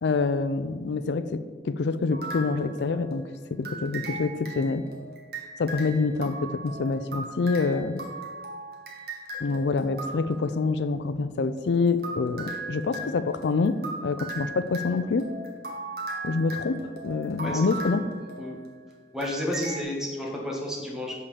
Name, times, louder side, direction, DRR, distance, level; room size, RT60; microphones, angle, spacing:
voice 1, 0.0-4.8 5.6-8.0 9.4-15.3 16.2-18.0, left 4 dB, 80° left, 12 dB, 0.4 m, -26 dB
sound 1, 2.1-3.2 3.6-10.6 11.6-18.8 19.2-19.8, right 2 dB, 60° right, 1.6 m, -38 dB
voice 2, 19.1-21.1, left 1 dB, 5° right, -2 dB, 1.6 m, -31 dB
6.6 x 5.5 x 7.1 m, 1.5 s
head